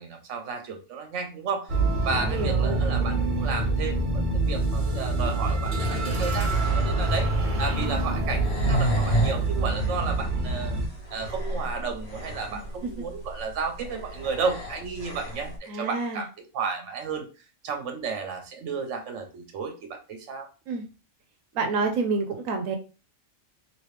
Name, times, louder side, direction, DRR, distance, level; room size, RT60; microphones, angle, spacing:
voice 1, 0.0-1.8 2.0-7.3 7.6-10.7 11.1-16.3 16.5-17.3 17.6-20.5, right 5 dB, 65° right, 5 dB, 1.1 m, -32 dB
sound 1, 1.7-10.9, right 2 dB, 45° right, 0.8 m, -26 dB
voice 2, 2.1-2.8 12.5-12.9 15.7-16.2 20.7-20.9 21.5-22.8, right 4 dB, 90° right, 4 dB, 1.0 m, -29 dB
sound 2, 6.4-15.6, right 1 dB, 55° left, 1.4 m, -33 dB
3.0 x 2.9 x 3.2 m, 0.33 s
omnidirectional pair, 1.4 m